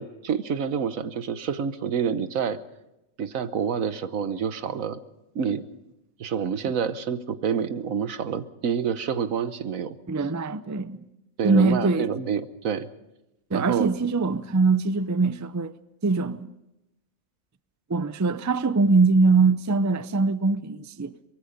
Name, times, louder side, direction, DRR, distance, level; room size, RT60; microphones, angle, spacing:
voice 1, 0.0-2.6 3.2-5.0 5.3-5.6 6.2-10.0 11.4-12.9 13.5-13.9, right 7 dB, 85° right, 1.5 m, -28 dB
voice 2, 10.1-11.1 11.4-12.1 13.5-15.7 16.0-16.5 17.9-21.1, right 3 dB, 25° right, 0.4 m, -22 dB
24.0 x 22.0 x 5.3 m
omnidirectional pair, 1.4 m